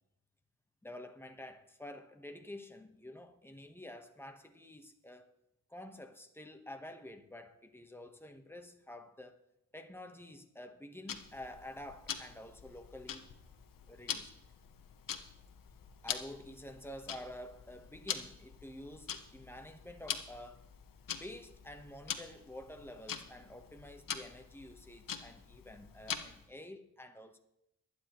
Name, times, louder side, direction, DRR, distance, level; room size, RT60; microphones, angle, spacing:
voice 1, 0.8-5.3 5.7-9.4 9.7-13.3 13.9-14.4 16.0-20.6 21.2-27.4, left 1 dB, 5° left, 1.2 m, -49 dB
Tick-tock, 11.1-26.5, left 8 dB, 80° left, 1.2 m, -44 dB
23.5 x 9.5 x 3.1 m
wide cardioid pair, 125°, 33 cm